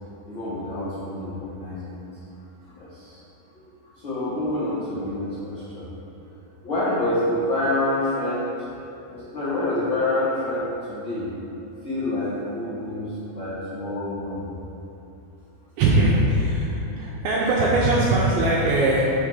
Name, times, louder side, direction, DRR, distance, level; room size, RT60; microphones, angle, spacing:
voice 1, 0.3-2.0 2.6-3.2 4.0-5.9 6.6-8.6 9.1-11.3 11.8-14.5 17.1-17.2, left 1 dB, 85° left, -13 dB, 1.1 m, -27 dB
voice 2, 15.8-19.1, right 2 dB, 85° right, -5 dB, 2.1 m, -20 dB
6.4 x 3.6 x 6.2 m, 3.0 s
omnidirectional pair, 5.0 m